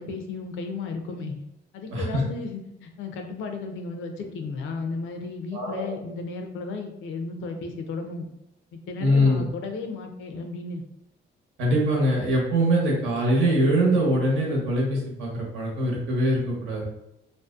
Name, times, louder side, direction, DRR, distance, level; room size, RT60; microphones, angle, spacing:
voice 1, 0.0-1.4 1.7-8.3 8.7-10.8, left 4 dB, 85° left, 4 dB, 0.5 m, -34 dB
voice 2, 1.9-2.2 5.5-6.0 9.0-9.4 11.6-16.8, equal, 80° right, -2 dB, 1.0 m, -23 dB
2.6 x 2.0 x 2.3 m, 0.85 s
cardioid pair, 90°, 20 cm